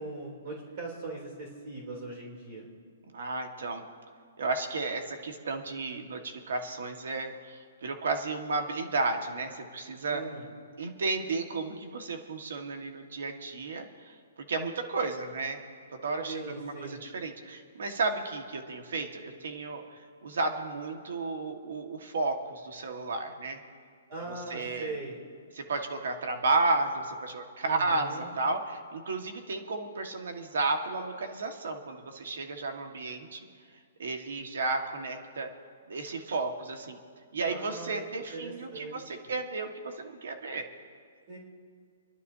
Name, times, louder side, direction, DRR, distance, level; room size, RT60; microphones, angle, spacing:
voice 1, 0.0-2.7 10.1-10.5 16.2-17.0 24.1-25.2 27.6-28.3 37.5-38.0 38.3-39.0 41.3-41.4, right 2 dB, 40° right, -2 dB, 3.2 m, -40 dB
voice 2, 3.1-3.8 4.4-10.2 10.8-15.6 15.9-23.6 24.2-25.0 25.5-33.5 34.0-35.5 35.9-37.0 37.3-40.7, right 3 dB, 75° right, 4 dB, 1.6 m, -33 dB
28.0 x 11.5 x 2.8 m, 2.1 s
hypercardioid pair, 160°, 0 cm